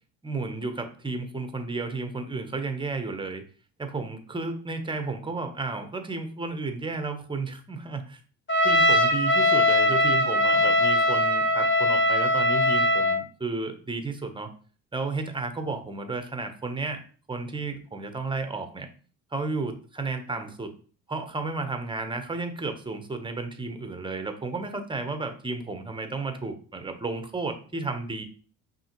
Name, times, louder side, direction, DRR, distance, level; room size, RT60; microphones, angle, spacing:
voice 1, 0.2-3.4 3.8-8.2 8.6-14.5 14.9-17.0 17.3-18.9 19.3-20.7 21.1-28.2, right 3 dB, 10° right, 7 dB, 0.8 m, -32 dB
Trumpet, 8.5-13.2, left 1 dB, 30° left, 1.2 m, -21 dB
5.4 x 2.8 x 3.0 m, 0.41 s
hypercardioid pair, 65°, 40 cm